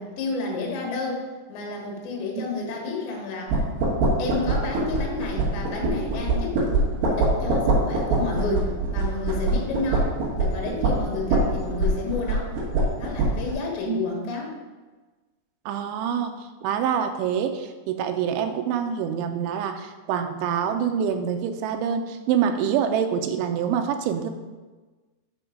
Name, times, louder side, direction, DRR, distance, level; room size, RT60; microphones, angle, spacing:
voice 1, 0.0-3.6 4.2-6.6 7.2-12.5 13.0-14.6, left 3 dB, 70° left, -1 dB, 3.4 m, -31 dB
sound 1, 3.5-13.6, right 2 dB, 65° right, 3.0 m, -24 dB
voice 2, 15.7-24.3, right 8 dB, 85° right, 7 dB, 2.8 m, -26 dB
7.0 x 5.3 x 5.0 m, 1.3 s
omnidirectional pair, 5.6 m